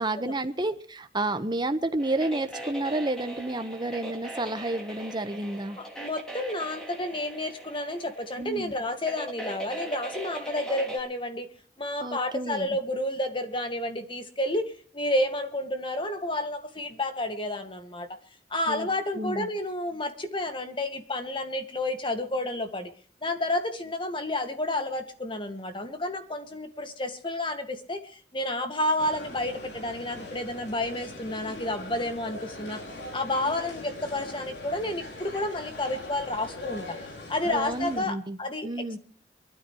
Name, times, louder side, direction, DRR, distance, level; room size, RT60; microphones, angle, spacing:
voice 1, 0.0-5.8 8.4-8.7 12.0-12.7 18.7-18.9 19.1-19.5 37.4-38.4 38.6-39.0, right 2 dB, 25° right, 9 dB, 1.2 m, -30 dB
sound 1, 2.0-11.0, right 1 dB, 5° left, 3.0 m, -40 dB
voice 2, 5.8-11.5 11.8-18.2 18.5-22.9 23.2-32.8 33.1-37.0 37.3-39.0, left 1 dB, 30° left, 7 dB, 2.0 m, -30 dB
sound 2, 29.0-38.0, left 2 dB, 70° left, 4.2 m, -41 dB
24.0 x 13.0 x 3.2 m, 0.43 s
head